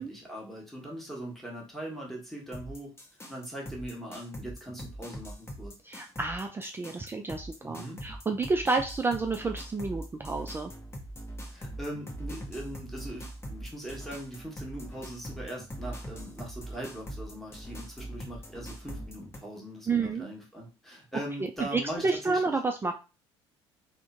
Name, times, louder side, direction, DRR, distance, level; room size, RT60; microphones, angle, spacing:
voice 1, 0.0-2.9 3.3-5.7 7.6-8.0 11.5-22.4, right 1 dB, ahead, -3 dB, 1.3 m, -40 dB
sound 1, 2.5-19.4, right 1 dB, 15° left, 0.9 m, -42 dB
voice 2, 5.8-10.7 19.9-20.3 21.7-22.9, right 3 dB, 15° right, 4 dB, 0.3 m, -30 dB
3.6 x 2.1 x 2.5 m, 0.30 s
figure-of-eight pair, 55°, 15 cm